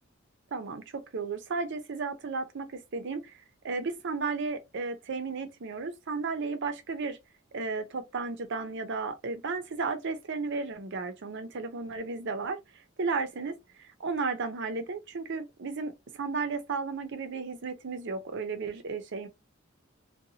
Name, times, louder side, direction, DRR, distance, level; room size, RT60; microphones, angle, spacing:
voice 1, 0.5-3.4 3.6-7.2 7.5-12.6 13.0-13.5 13.8-19.3, right 4 dB, 60° right, 0.6 m, -34 dB
2.7 x 2.2 x 2.7 m
head